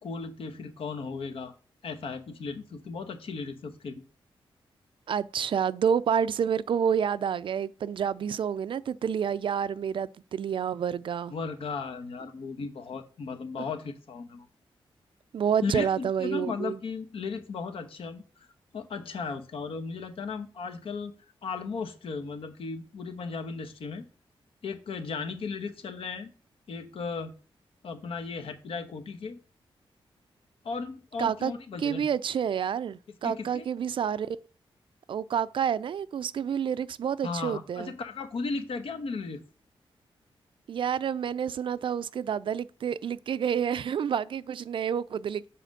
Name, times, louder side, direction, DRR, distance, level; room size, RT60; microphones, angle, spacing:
voice 1, 0.0-1.5 1.8-4.0 11.3-14.5 15.6-18.5 18.7-21.1 21.4-24.1 24.6-26.3 26.7-27.3 27.8-29.4 30.6-32.1 33.2-33.7 37.2-39.4, left 4 dB, 70° left, 1.1 m, -36 dB
voice 2, 5.1-11.3 15.3-16.8 31.2-31.5 31.8-34.4 35.1-37.9 40.7-45.5, right 8 dB, 60° right, 0.4 m, -29 dB
7.6 x 4.2 x 6.5 m
wide cardioid pair, 160°, 10 cm